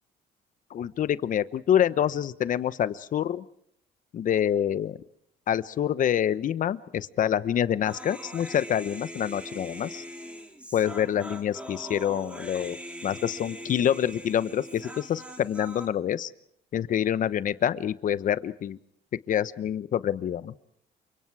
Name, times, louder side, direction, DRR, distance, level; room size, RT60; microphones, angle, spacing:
voice 1, 0.7-3.4 4.1-5.0 5.5-10.0 10.7-12.8 13.0-16.3 16.7-18.8 19.3-20.6, left 10 dB, 50° left, 15 dB, 1.0 m, -26 dB
Human voice, 7.8-15.9, equal, 5° right, 4.0 m, -41 dB
29.0 x 25.0 x 4.9 m, 0.70 s
cardioid pair, 110°, 17 cm